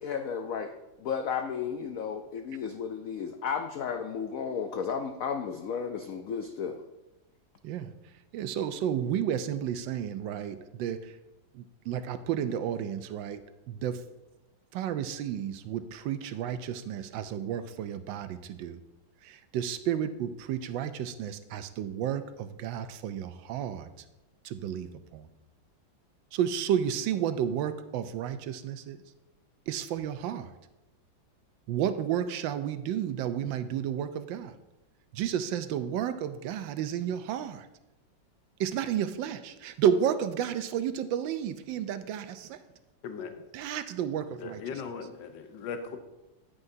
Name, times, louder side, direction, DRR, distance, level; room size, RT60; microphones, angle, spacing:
voice 1, 0.0-0.7 1.0-6.8, left 6 dB, 90° left, 6 dB, 0.7 m, -33 dB
voice 2, 8.3-11.2 11.5-14.0 14.7-18.8 19.2-23.9 24.4-25.3 26.3-29.0 29.7-30.5 31.7-34.5 35.1-37.7 38.6-42.6 43.5-44.8, right 9 dB, 75° right, 11 dB, 1.3 m, -32 dB
voice 3, 44.4-46.0, left 6 dB, 70° left, 7 dB, 1.5 m, -38 dB
9.8 x 9.4 x 2.7 m, 0.99 s
omnidirectional pair, 2.1 m